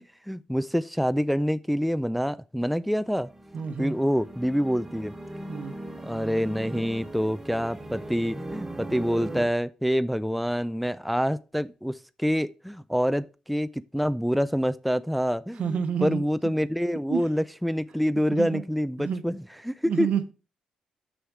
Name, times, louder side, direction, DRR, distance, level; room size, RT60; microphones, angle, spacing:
voice 1, 0.0-3.3 3.8-5.1 6.0-20.1, equal, ahead, 0.4 m, -27 dB
sound 1, 2.9-9.5, right 1 dB, 15° right, 1.3 m, -39 dB
voice 2, 3.5-3.9 5.5-5.7 15.6-16.2 17.1-17.2 18.3-18.6 19.0-19.2 19.8-20.3, right 7 dB, 65° right, 0.9 m, -29 dB
6.3 x 6.3 x 4.8 m
cardioid pair, 80°, 2 cm